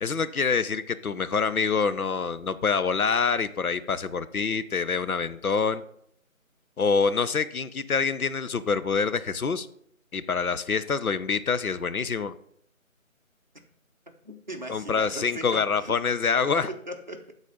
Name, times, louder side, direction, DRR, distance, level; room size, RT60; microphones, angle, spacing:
voice 1, 0.0-5.8 6.8-9.7 10.1-12.3 14.7-16.7, left 5 dB, 85° left, 13 dB, 0.7 m, -26 dB
voice 2, 14.2-15.9 16.5-17.3, equal, 35° right, 2 dB, 0.8 m, -38 dB
10.5 x 4.1 x 5.2 m, 0.68 s
figure-of-eight pair, 160°, 42 cm